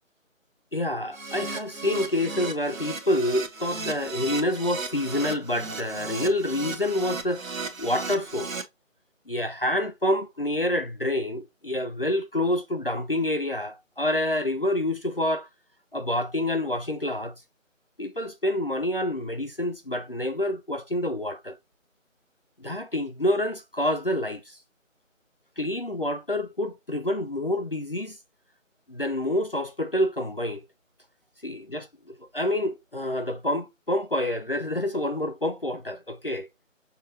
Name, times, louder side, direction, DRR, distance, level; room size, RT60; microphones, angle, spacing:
voice 1, 0.7-8.5 9.3-15.5 15.9-17.3 18.0-21.5 22.6-24.6 25.6-28.2 28.9-30.6 31.4-31.9 32.3-36.5, left 1 dB, 45° left, 0.4 m, -27 dB
Keyboard (musical), 1.1-8.6, right 4 dB, 80° right, 1.0 m, -35 dB
5.6 x 2.4 x 2.8 m
figure-of-eight pair, 160°, 40 cm